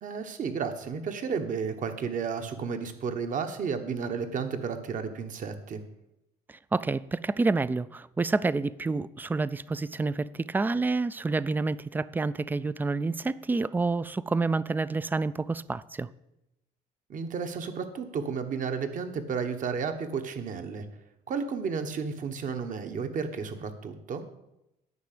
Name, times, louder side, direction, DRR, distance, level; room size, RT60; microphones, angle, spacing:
voice 1, 0.0-5.8 17.1-20.8 21.3-24.2, right 5 dB, 50° right, 1.2 m, -32 dB
voice 2, 6.5-16.1, right 3 dB, 10° right, 0.3 m, -28 dB
9.6 x 5.9 x 8.3 m
cardioid pair, 110°, 17 cm